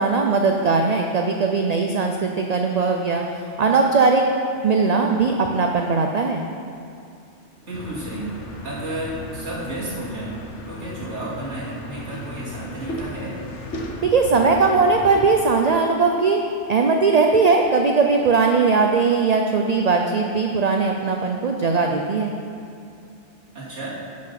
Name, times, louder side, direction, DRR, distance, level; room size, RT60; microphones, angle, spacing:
voice 1, 0.0-4.2 4.6-6.5 14.0-16.4 16.7-22.3, right 4 dB, 50° right, 3 dB, 0.5 m, -19 dB
voice 2, 7.6-8.3 8.6-10.4 10.7-13.3 23.5-24.0, right 1 dB, 75° right, -9 dB, 2.9 m, -32 dB
sound 1, 7.7-15.4, left 1 dB, 75° left, 1.3 m, -35 dB
11.0 x 5.9 x 5.8 m, 2.5 s
omnidirectional pair, 1.2 m